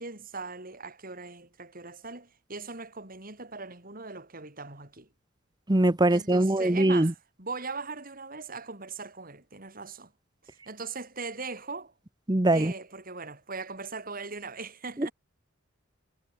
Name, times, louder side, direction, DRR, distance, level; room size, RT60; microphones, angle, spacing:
voice 1, 0.0-5.1 6.1-10.1 10.4-11.9 12.5-15.1, right 4 dB, 45° right, 5.2 m, -40 dB
voice 2, 5.7-7.1 12.3-12.7 15.0-15.1, right 1 dB, 20° right, 1.0 m, -22 dB
head